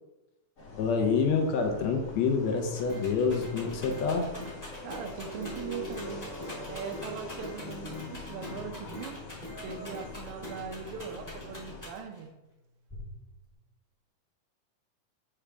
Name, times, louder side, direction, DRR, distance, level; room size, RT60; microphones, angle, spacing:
sound 1, 0.6-11.8, left 2 dB, 40° left, 1.3 m, -43 dB
voice 1, 0.7-4.3 8.5-8.6, left 5 dB, 70° left, 3 dB, 1.8 m, -27 dB
Rattle, 2.3-12.3 12.9-13.5, left 1 dB, 5° left, 1.9 m, -47 dB
sound 2, 2.9-3.0 3.4-4.1 4.4-4.6 4.9-5.1 5.4-6.1 6.4-6.6 6.9-7.1 7.4-8.1 8.4-8.6 8.9-9.1 9.4-10.1 10.4-10.6, equal, 35° right, 2.8 m, -44 dB
voice 2, 4.8-6.3 6.7-9.2 9.6-12.3, right 6 dB, 80° right, 5 dB, 1.3 m, -40 dB
8.6 x 4.9 x 3.4 m, 0.99 s
omnidirectional pair, 3.5 m